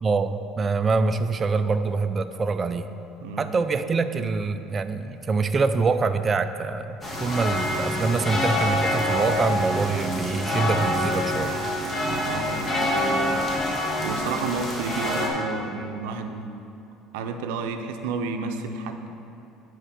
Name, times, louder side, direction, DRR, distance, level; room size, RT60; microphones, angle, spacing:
voice 1, 0.0-2.9 3.4-11.7, right 4 dB, 25° right, 10 dB, 0.4 m, -25 dB
voice 2, 3.2-3.5 8.1-8.3 12.3-13.4 14.0-16.5 17.1-19.1, right 4 dB, 90° right, 6 dB, 0.6 m, -31 dB
sound 1, 7.0-15.3, left 1 dB, 25° left, 1.4 m, -26 dB
8.9 x 4.5 x 5.9 m, 2.8 s
cardioid pair, 115°, 0 cm